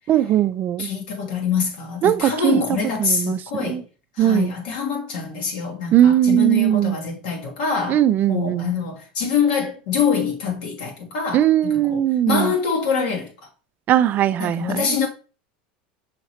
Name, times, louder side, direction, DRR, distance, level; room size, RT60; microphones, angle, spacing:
voice 1, 0.1-0.9 2.0-2.6 3.0-3.4 3.7-3.8 4.2-4.5 5.9-7.0 7.9-8.7 11.3-12.5 13.9-14.9, right 11 dB, 40° right, 0.3 m, -19 dB
voice 2, 0.8-3.8 4.1-8.0 8.3-13.3 14.4-15.1, left 6 dB, 75° left, 1.3 m, -25 dB
5.6 x 3.0 x 2.9 m
supercardioid pair, 110°, 5 cm